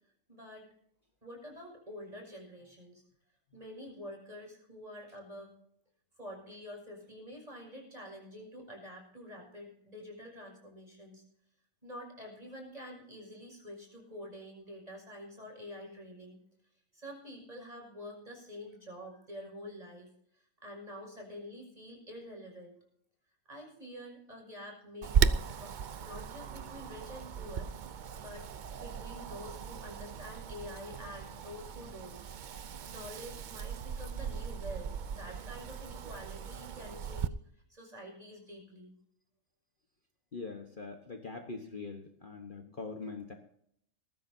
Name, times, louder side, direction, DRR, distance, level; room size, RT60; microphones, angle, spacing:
voice 1, 0.3-0.7 1.2-3.0 3.5-5.5 6.2-11.2 11.8-16.4 16.9-22.7 23.5-27.7 28.1-32.2 32.8-38.9, left 1 dB, 25° right, 1 dB, 6.3 m, -47 dB
Wind, 25.0-37.3, right 7 dB, 60° right, 0.5 m, -36 dB
voice 2, 40.3-43.3, left 4 dB, 40° left, 4 dB, 1.3 m, -42 dB
19.5 x 14.5 x 2.7 m, 0.68 s
omnidirectional pair, 1.5 m